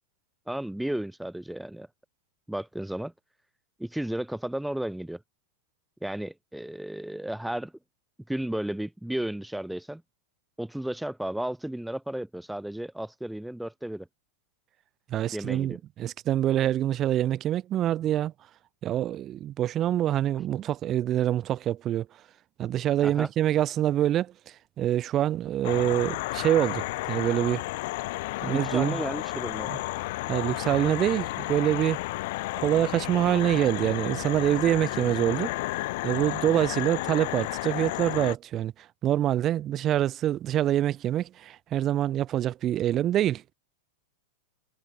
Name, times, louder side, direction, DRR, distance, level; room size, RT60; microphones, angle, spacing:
voice 1, 0.5-1.9 2.5-3.1 3.8-5.2 6.0-7.7 8.3-10.0 10.6-14.1 15.3-15.8 23.0-23.3 28.4-29.7, right 1 dB, ahead, 1.4 m, -33 dB
voice 2, 15.1-18.3 18.8-22.1 22.6-27.7 28.4-29.0 29.7-29.8 30.3-32.0 32.6-35.5 36.0-43.4, right 12 dB, 25° right, 0.5 m, -26 dB
sound 1, 25.6-38.4, left 20 dB, 50° left, 1.3 m, -32 dB
supercardioid pair, 165°, 0 cm